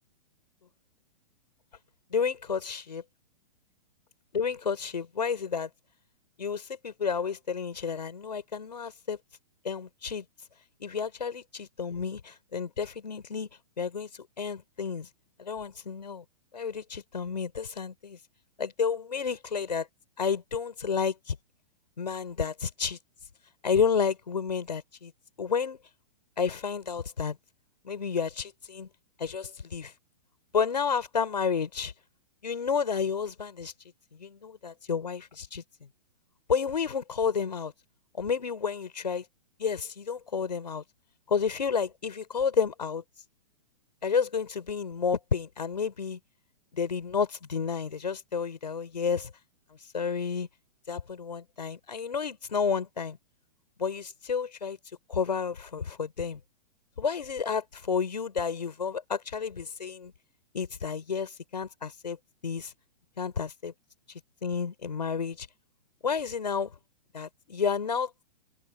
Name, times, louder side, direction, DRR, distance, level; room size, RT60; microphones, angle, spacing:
voice 1, 2.1-3.0 4.3-5.7 6.4-9.2 9.6-10.3 10.8-13.5 13.8-14.1 14.4-15.1 15.4-16.2 16.5-18.2 18.6-19.9 20.2-21.4 22.0-23.0 23.6-25.1 25.4-25.8 26.4-27.4 27.8-28.9 29.2-29.9 30.5-31.9 32.4-33.7 34.1-35.9 36.5-37.7 38.1-39.2 39.6-40.8 41.3-43.0 44.0-46.2 46.7-49.3 49.7-50.5 50.9-53.2 53.8-54.8 55.1-56.4 57.0-60.1 60.5-62.2 62.4-62.7 63.2-63.7 64.4-65.5 66.0-66.7 67.1-68.1, left 6 dB, 80° left, 5.1 m, -31 dB
open air
hypercardioid pair, 120°, 21 cm